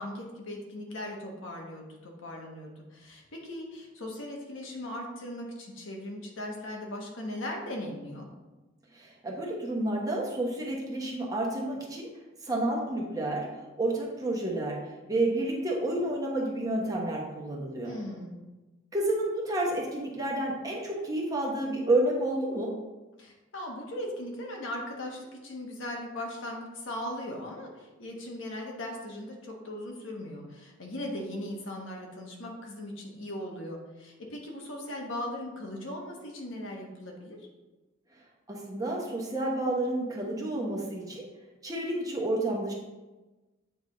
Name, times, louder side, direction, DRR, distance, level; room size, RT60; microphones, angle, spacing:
voice 1, 0.0-8.3 17.8-18.4 23.2-37.4, left 1 dB, 80° left, 0 dB, 1.2 m, -38 dB
voice 2, 8.9-12.1 12.4-14.8 15.1-18.0 18.9-22.7 38.5-41.2 41.6-42.7, right 1 dB, 20° right, -3 dB, 1.0 m, -30 dB
8.0 x 3.4 x 3.9 m, 1.1 s
head